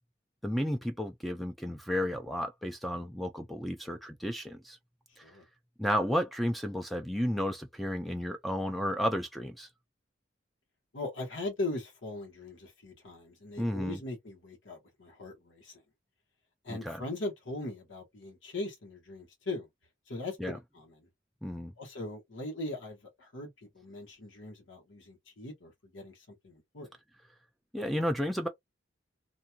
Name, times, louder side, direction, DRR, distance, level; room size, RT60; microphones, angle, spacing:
voice 1, 0.4-4.8 5.2-5.3 5.8-9.7 13.6-14.0 16.7-17.0 20.4-20.6 21.4-21.7 27.7-28.5, equal, ahead, 0.3 m, -32 dB
voice 2, 10.9-15.8 16.6-19.7 20.1-20.9 21.8-23.5 23.7-26.2 26.4-26.9, left 2 dB, 75° left, 1.2 m, -40 dB
2.9 x 2.5 x 2.2 m
head